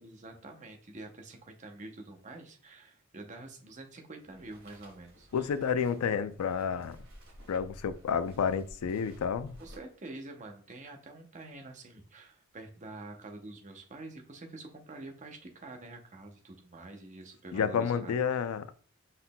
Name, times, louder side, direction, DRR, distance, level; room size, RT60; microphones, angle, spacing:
voice 1, 0.0-5.5 9.6-18.5, right 2 dB, 35° right, 0.7 m, -47 dB
sound 1, 4.2-9.8, equal, 65° right, 1.8 m, -53 dB
voice 2, 5.3-7.0 7.5-9.6 17.5-18.9, left 6 dB, 75° left, 0.4 m, -30 dB
5.5 x 4.0 x 2.2 m
head